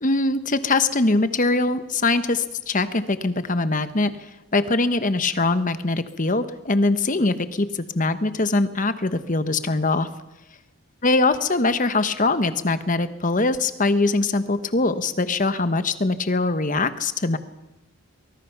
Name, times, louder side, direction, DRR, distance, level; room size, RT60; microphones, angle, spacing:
voice 1, 0.0-4.1 4.5-10.1 11.0-17.4, left 2 dB, 35° left, 11 dB, 1.1 m, -22 dB
24.0 x 20.5 x 6.0 m, 0.97 s
head